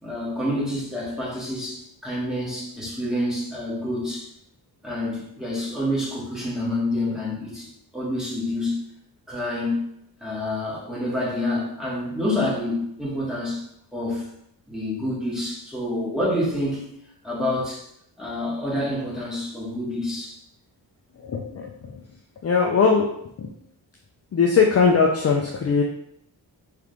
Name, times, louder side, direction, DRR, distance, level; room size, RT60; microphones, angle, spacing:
voice 1, 0.0-4.3 4.8-8.8 9.3-9.8 10.2-13.6 13.9-14.3 14.7-16.8 17.2-17.8 18.2-20.4, left 1 dB, ahead, -7 dB, 1.6 m, -28 dB
voice 2, 21.2-22.0 22.4-23.1 23.4-23.5 24.3-25.8, left 5 dB, 35° left, 0 dB, 0.5 m, -20 dB
3.7 x 3.4 x 3.3 m, 0.74 s
wide cardioid pair, 110°, 42 cm